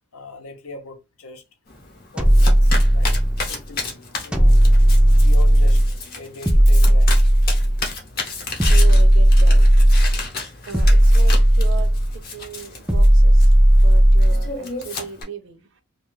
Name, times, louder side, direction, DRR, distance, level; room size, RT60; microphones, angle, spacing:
voice 1, 0.1-1.4 2.1-3.2 3.5-4.6 5.2-5.8 6.1-7.2, left 3 dB, 80° left, 0.7 m, -40 dB
Domestic sounds home sounds, 1.7-15.2, left 3 dB, 45° left, 0.8 m, -33 dB
sound 1, 2.2-3.5 4.3-6.0 6.5-7.9 8.6-10.2 10.7-12.1 12.9-14.5, equal, 5° right, 0.3 m, -14 dB
voice 2, 8.7-9.6 10.7-13.5 13.8-15.7, right 5 dB, 60° right, 0.5 m, -36 dB
2.4 x 2.3 x 3.1 m
head